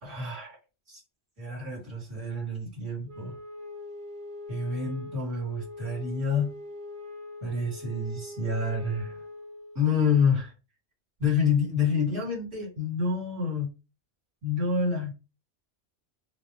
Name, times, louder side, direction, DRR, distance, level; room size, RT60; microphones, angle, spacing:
voice 1, 0.0-0.6 0.9-1.0 1.4-3.4 4.5-6.5 7.4-9.2 9.7-10.5 11.2-13.7 14.4-15.1, left 4 dB, 85° right, -5 dB, 3.0 m, -28 dB
Wind instrument woodwind instrument, 3.1-9.9, left 2 dB, 45° right, 1.0 m, -42 dB
5.1 x 2.1 x 3.2 m, 0.29 s
omnidirectional pair, 1.2 m